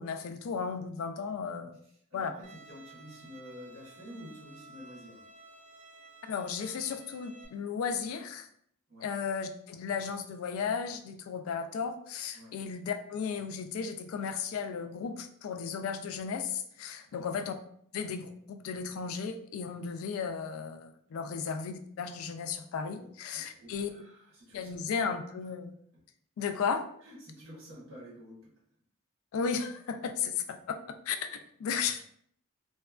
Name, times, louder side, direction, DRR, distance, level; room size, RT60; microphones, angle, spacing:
voice 1, 0.0-1.8 2.1-2.3 6.3-8.5 9.0-17.5 17.9-23.9 24.5-25.7 26.4-26.8 29.3-30.8 31.1-32.1, left 6 dB, 75° left, 9 dB, 0.3 m, -35 dB
voice 2, 1.8-5.2 8.9-9.1 12.3-12.5 17.0-17.5 21.1-21.4 22.9-23.1 23.3-25.0 27.0-28.5, equal, 60° right, -6 dB, 1.1 m, -50 dB
Bowed string instrument, 2.4-7.4, right 3 dB, 35° right, 0.4 m, -54 dB
2.8 x 2.3 x 2.3 m, 0.65 s
head